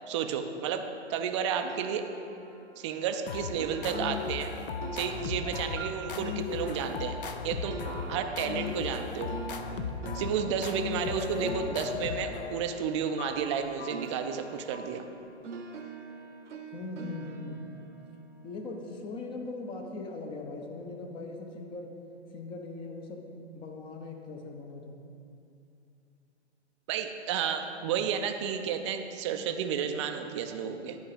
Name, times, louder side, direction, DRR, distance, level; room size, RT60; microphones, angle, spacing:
voice 1, 0.1-2.1 2.8-4.5 4.9-7.7 8.1-9.3 10.1-15.0 26.9-31.0, right 7 dB, 25° right, 6 dB, 0.5 m, -32 dB
sound 1, 1.6-13.6 13.9-19.1, right 4 dB, 85° right, 0.9 m, -44 dB
sound 2, 3.3-12.8, left 6 dB, 50° left, 0.7 m, -36 dB
sound 3, 10.3-15.3, left 4 dB, 70° left, 0.9 m, -48 dB
voice 2, 16.7-17.6 18.4-21.9 22.3-25.0, left 3 dB, 15° left, 3 dB, 0.7 m, -40 dB
10.5 x 4.7 x 6.6 m, 2.6 s
figure-of-eight pair, 125°, 35 cm